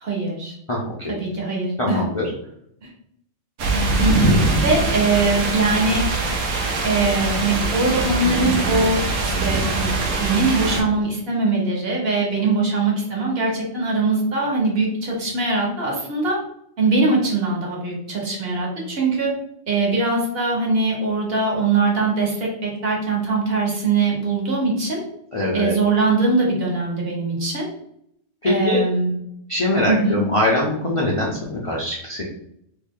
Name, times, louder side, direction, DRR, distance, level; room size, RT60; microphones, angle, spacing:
voice 1, 0.0-0.5 1.1-2.0 2.8-2.9 4.0-6.0 6.8-9.9 10.2-16.4 16.8-19.3 19.7-25.0 25.5-27.7 28.4-29.1 29.9-30.2, right 3 dB, 50° right, -2 dB, 1.2 m, -21 dB
voice 2, 0.7-1.2 1.8-2.3 25.3-25.7 28.4-28.8 29.5-32.2, left 1 dB, 40° left, -5 dB, 0.5 m, -22 dB
sound 1, 3.6-10.8, right 2 dB, 80° right, 1.0 m, -22 dB
2.9 x 2.7 x 3.7 m, 0.73 s
omnidirectional pair, 1.3 m